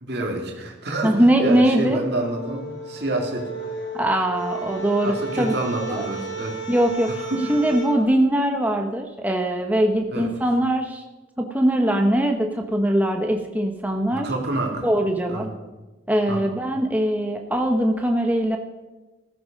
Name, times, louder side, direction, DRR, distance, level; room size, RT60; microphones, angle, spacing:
voice 1, 0.0-3.5 5.0-6.6 7.1-7.6 10.1-10.3 14.1-14.9 15.3-15.5 16.3-16.4, right 2 dB, 55° right, 1 dB, 2.6 m, -28 dB
voice 2, 1.0-2.0 3.9-5.5 5.9-6.0 6.7-7.1 7.5-11.0 11.4-14.3 14.8-15.5 16.1-18.6, right 1 dB, 10° right, 3 dB, 1.0 m, -21 dB
sound 1, 1.8-7.9, right 3 dB, 75° left, 6.5 m, -34 dB
14.5 x 13.5 x 5.2 m, 1.1 s
head